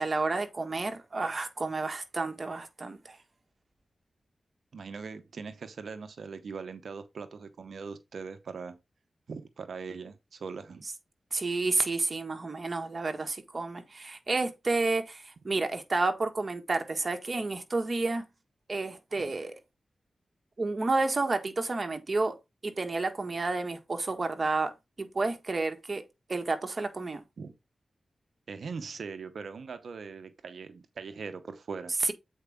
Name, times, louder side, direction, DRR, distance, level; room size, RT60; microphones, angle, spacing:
voice 1, 0.0-3.2 11.3-18.2 18.7-19.6 20.6-22.4 22.6-26.0 26.3-27.2 32.0-32.1, right 3 dB, 50° right, 1.6 m, -30 dB
voice 2, 4.7-8.8 9.3-10.8 19.2-19.3 27.4-27.5 28.5-31.9, right 5 dB, 80° right, 0.9 m, -41 dB
8.0 x 4.6 x 3.6 m
cardioid pair, 50°, 0 cm